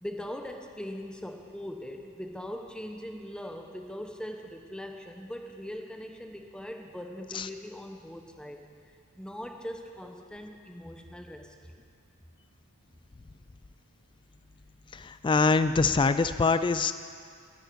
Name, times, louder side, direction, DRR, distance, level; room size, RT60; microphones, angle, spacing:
voice 1, 0.0-8.6 9.2-11.8, equal, 5° left, 3 dB, 0.8 m, -41 dB
voice 2, 14.9-16.9, left 4 dB, 20° left, 12 dB, 0.3 m, -24 dB
24.0 x 10.0 x 4.6 m, 2.2 s
head